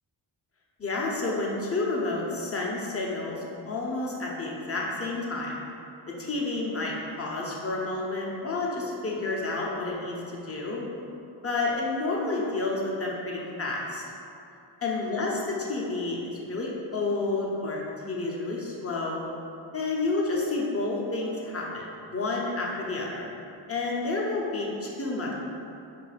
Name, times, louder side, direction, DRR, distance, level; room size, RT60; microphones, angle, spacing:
voice 1, 0.8-5.5 6.1-10.9 11.4-14.0 14.8-15.4 15.7-17.8 18.1-19.3 19.7-21.9 22.1-23.3 23.7-25.3, left 3 dB, 30° left, -4 dB, 0.9 m, -30 dB
4.6 x 2.8 x 4.1 m, 2.7 s
cardioid pair, 55°, 47 cm